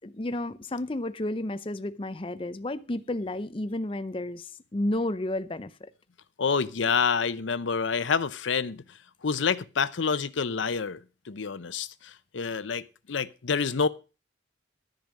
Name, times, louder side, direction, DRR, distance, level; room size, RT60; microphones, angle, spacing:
voice 1, 0.0-5.9, left 1 dB, 30° left, 0.6 m, -32 dB
voice 2, 6.4-8.8 9.2-13.9, left 5 dB, 90° left, 0.7 m, -28 dB
13.5 x 5.2 x 7.5 m
head